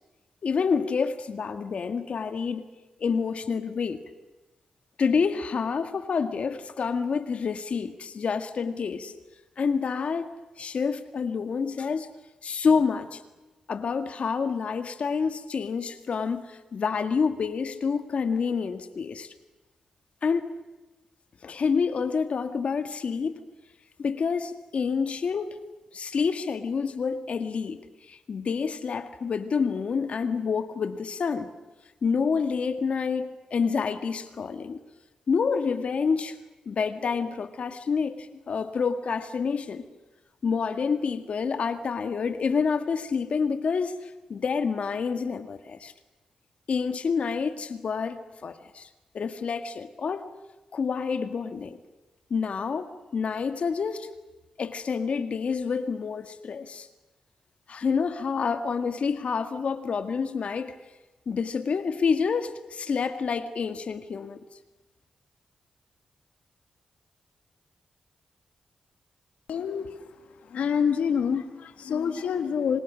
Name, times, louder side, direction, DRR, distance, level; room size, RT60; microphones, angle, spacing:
voice 1, 0.4-2.7 3.0-4.0 5.0-9.1 9.6-10.3 10.6-12.1 12.4-13.2 13.7-19.3 20.2-20.5 21.4-23.4 24.0-25.6 25.9-27.8 28.1-31.5 32.0-34.8 35.3-36.4 36.6-39.8 40.4-45.9 46.7-48.9 49.1-50.3 50.7-51.8 52.3-54.1 54.6-56.9 57.7-60.8 61.2-64.4, left 5 dB, 65° left, 9 dB, 1.7 m, -28 dB
voice 2, 69.5-70.1 70.4-72.8, left 7 dB, 85° left, 8 dB, 2.0 m, -27 dB
28.0 x 26.0 x 6.3 m, 1.1 s
cardioid pair, 55°, 2 cm